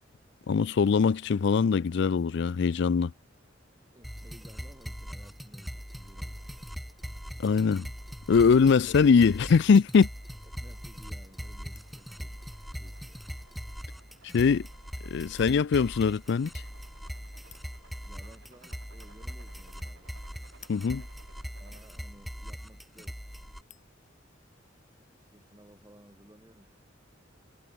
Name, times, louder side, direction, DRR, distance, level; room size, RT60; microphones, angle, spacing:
voice 1, 0.5-3.1 7.4-7.9 8.3-10.1 14.3-14.6 15.1-16.5 20.7-21.0, left 5 dB, 65° left, 0.4 m, -22 dB
voice 2, 3.9-6.6 10.5-12.4 12.8-13.2 18.0-20.2 21.6-23.2 25.1-26.7, right 1 dB, 20° right, 2.7 m, -56 dB
sound 1, 4.0-23.6, equal, ahead, 0.6 m, -41 dB
sound 2, 5.7-21.9, right 3 dB, 80° right, 6.1 m, -62 dB
sound 3, 10.3-26.1, left 9 dB, 40° left, 4.5 m, -64 dB
head